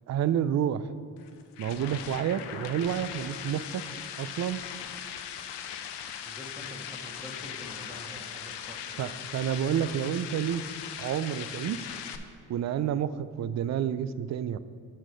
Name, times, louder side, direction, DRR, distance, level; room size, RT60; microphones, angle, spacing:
voice 1, 0.1-0.9 1.6-3.8 4.2-4.6 9.0-10.6 11.0-11.9 12.5-14.6, right 9 dB, 40° right, 15 dB, 0.4 m, -29 dB
sound 1, 1.2-12.2, left 9 dB, 75° left, 0.7 m, -39 dB
voice 2, 6.2-9.2, equal, 10° right, -1 dB, 1.6 m, -46 dB
6.5 x 6.1 x 5.2 m, 2.3 s
supercardioid pair, 50°, 43 cm